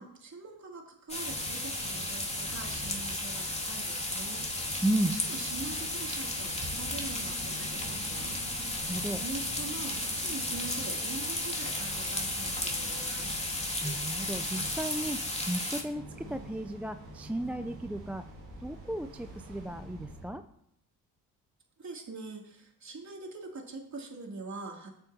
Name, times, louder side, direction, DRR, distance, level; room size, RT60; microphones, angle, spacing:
voice 1, 0.0-4.8 5.2-8.4 8.7-13.4 21.8-24.9, right 3 dB, 35° right, 0 dB, 3.0 m, -43 dB
sound 1, 1.1-15.8, left 1 dB, 15° left, 2.6 m, -34 dB
sound 2, 1.2-20.3, right 1 dB, 80° right, 3.3 m, -46 dB
voice 2, 4.8-5.2 8.9-9.2 13.8-16.0 16.3-18.2 18.6-20.4, right 1 dB, 5° right, 8 dB, 0.5 m, -34 dB
18.5 x 6.9 x 2.9 m, 0.73 s
hypercardioid pair, 55°, 46 cm